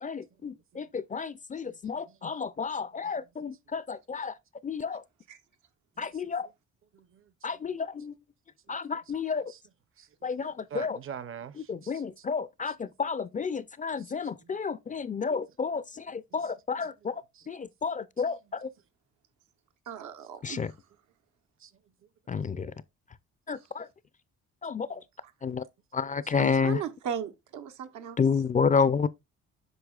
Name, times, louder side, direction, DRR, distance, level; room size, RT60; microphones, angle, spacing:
voice 1, 0.0-4.3 4.6-5.0 6.0-6.5 7.4-8.1 8.7-9.4 10.2-11.0 11.7-17.1 17.5-18.7 20.4-20.7 22.3-22.7 23.5-23.9 24.6-25.0 25.4-25.6 25.9-26.8 28.2-29.1, left 5 dB, 25° left, 0.4 m, -30 dB
voice 2, 0.5-0.8 1.6-1.8 2.1-2.4 2.7-3.5 6.0-6.3 6.9-7.2 9.1-9.2 9.5-9.6 10.0-12.2 14.0-14.6 16.3-16.5 16.8-17.5 18.3-18.4 21.6-21.7 22.5-22.6 26.2-26.3, right 7 dB, 45° right, 0.7 m, -47 dB
voice 3, 19.9-20.8 25.2-25.3 26.4-28.2, right 8 dB, 80° right, 1.0 m, -37 dB
8.1 x 5.8 x 2.3 m
cardioid pair, 90°, 30 cm